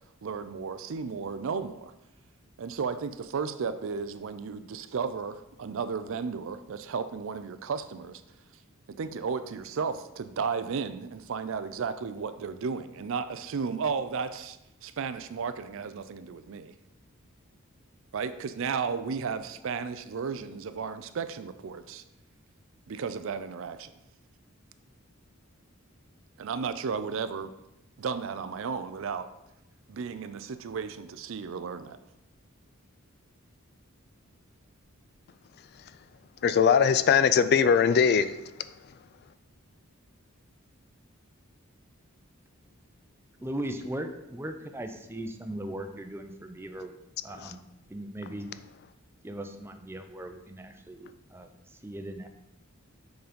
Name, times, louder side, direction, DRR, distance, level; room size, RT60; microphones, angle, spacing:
voice 1, 0.2-1.9 2.6-8.2 8.9-16.7 18.1-22.0 22.9-23.9 26.4-27.5 28.0-29.3 29.9-32.0, right 5 dB, 65° right, 0.4 m, -34 dB
voice 2, 36.4-38.3, left 7 dB, 50° left, 0.3 m, -20 dB
voice 3, 43.4-46.9 47.2-47.6 47.9-48.5 49.2-51.5 51.8-52.3, right 1 dB, 10° right, 0.6 m, -38 dB
7.0 x 3.9 x 5.1 m
head